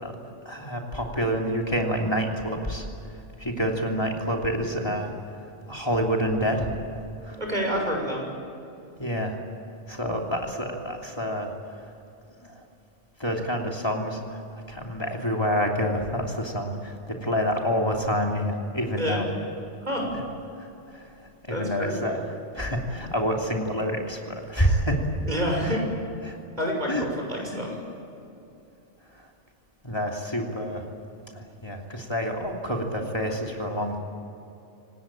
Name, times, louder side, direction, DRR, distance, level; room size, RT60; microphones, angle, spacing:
voice 1, 0.0-5.1 5.7-6.7 7.2-7.4 9.0-9.4 9.9-11.9 12.4-12.6 13.2-14.4 14.7-19.2 20.1-20.2 20.6-21.1 21.5-25.1 25.6-25.8 26.2-26.4 26.9-27.1 27.4-27.6 29.1-29.3 29.8-30.9 31.3-34.0, equal, 20° left, 1 dB, 3.1 m, -28 dB
voice 2, 7.4-8.3 18.9-19.2 19.9-20.1 21.5-22.0 25.3-25.8 26.6-27.8, equal, 35° right, 0 dB, 6.8 m, -28 dB
26.5 x 19.0 x 9.0 m, 2.7 s
omnidirectional pair, 1.2 m